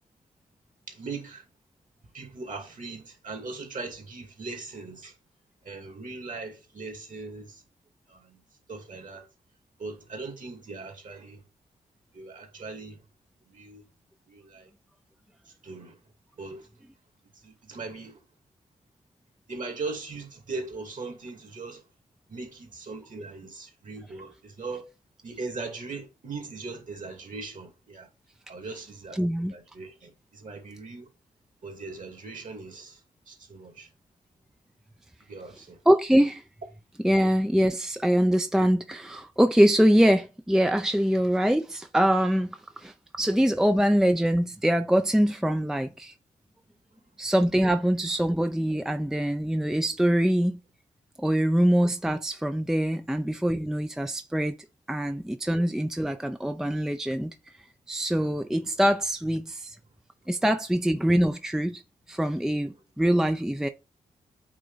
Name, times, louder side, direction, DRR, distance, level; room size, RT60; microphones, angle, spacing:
voice 1, 0.9-1.4 2.1-5.1 5.6-7.6 8.1-8.4 8.7-9.3 9.8-11.4 12.1-13.0 13.5-13.8 14.3-14.7 15.6-16.0 16.4-16.7 17.4-18.2 19.5-21.8 22.3-24.9 25.2-28.1 28.5-29.2 29.5-31.1 31.6-33.0 33.3-33.9 35.3-35.8, right 3 dB, 50° right, 2.4 m, -39 dB
voice 2, 29.1-29.6 35.9-36.4 37.0-46.1 47.2-50.6 51.2-54.6 54.9-57.3 57.9-59.8 60.3-61.8 62.1-63.7, equal, 5° right, 0.6 m, -24 dB
8.5 x 2.9 x 4.0 m
supercardioid pair, 45°, 16 cm